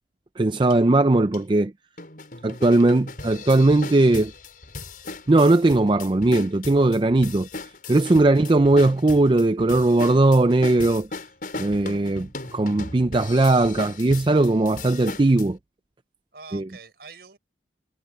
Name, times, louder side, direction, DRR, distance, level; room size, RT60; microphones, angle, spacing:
voice 1, 0.4-1.7 2.4-4.3 5.3-7.5 7.9-11.1 11.6-15.6 16.5-16.6, right 2 dB, 25° right, 0.4 m, -19 dB
sound 1, 0.7-0.8 1.3-1.4 2.0-15.5, left 3 dB, 50° left, 6.5 m, -37 dB
voice 2, 8.2-8.6 16.3-17.4, right 4 dB, 60° right, 5.7 m, -45 dB
head